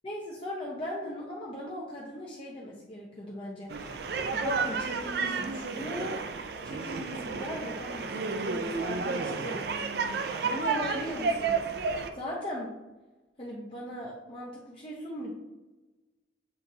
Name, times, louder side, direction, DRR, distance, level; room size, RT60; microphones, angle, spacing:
voice 1, 0.0-4.0 4.3-6.2 6.6-9.6 10.4-11.6 12.1-12.7 13.4-15.3, equal, 30° left, -5 dB, 0.7 m, -38 dB
sound 1, 3.7-12.1, right 4 dB, 60° right, 0.4 m, -31 dB
7.6 x 2.6 x 2.7 m, 1.1 s
head